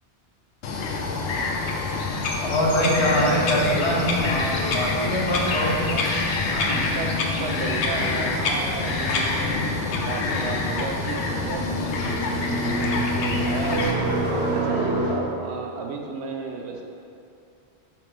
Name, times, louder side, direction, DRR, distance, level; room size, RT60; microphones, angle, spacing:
Bird vocalization bird call bird song, 0.6-13.9, left 3 dB, 80° left, 0.9 m, -26 dB
voice 1, 2.4-6.9, equal, 30° left, -4 dB, 0.8 m, -24 dB
sound 1, 3.0-12.9, left 3 dB, 55° left, 0.4 m, -40 dB
voice 2, 7.0-14.1 14.5-16.8, right 4 dB, 70° right, 2 dB, 0.9 m, -33 dB
sound 2, 7.7-15.1, right 2 dB, 90° right, 1.3 m, -29 dB
5.5 x 5.1 x 3.3 m, 2.5 s
omnidirectional pair, 1.2 m